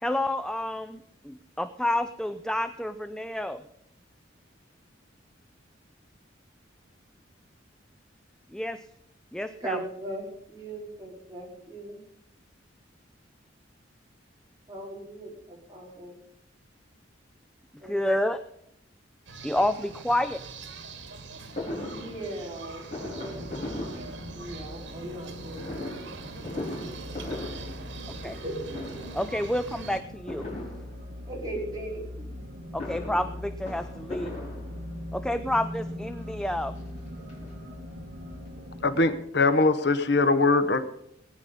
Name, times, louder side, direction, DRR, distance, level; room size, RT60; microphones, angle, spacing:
voice 1, 0.0-3.6 8.5-8.8 9.3-9.8 17.8-18.4 19.4-20.4 28.2-28.4 29.1-30.5 32.7-34.4 35.1-36.8, left 1 dB, 5° left, 0.5 m, -29 dB
voice 2, 9.6-12.0 14.7-16.2 17.8-18.0 21.8-23.4 24.3-25.9 26.4-27.3 28.4-29.0 31.2-32.4, right 1 dB, 20° right, 4.8 m, -39 dB
sound 1, 19.3-30.0, right 3 dB, 85° right, 2.3 m, -43 dB
Fireworks, 21.6-24.7 25.5-28.4 28.7-29.3 30.3-31.4 32.5-35.2 35.9-36.0 36.3-36.4 36.7-38.0 38.3-38.4 38.6-38.7, left 1 dB, 40° left, 5.4 m, -39 dB
sound 2, 23.3-39.1, left 1 dB, 60° right, 2.0 m, -41 dB
voice 3, 38.8-40.8, left 3 dB, 60° left, 1.0 m, -22 dB
19.5 x 9.7 x 5.4 m
head